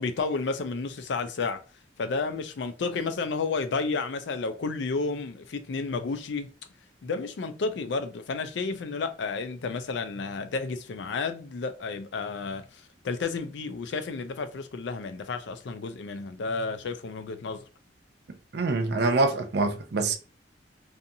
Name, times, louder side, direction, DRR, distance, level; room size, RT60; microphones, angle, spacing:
voice 1, 0.0-1.6 2.0-6.5 7.0-17.6, left 4 dB, 75° left, 0.4 m, -31 dB
voice 2, 18.5-20.1, right 3 dB, 65° right, 0.5 m, -25 dB
2.6 x 2.5 x 2.6 m
head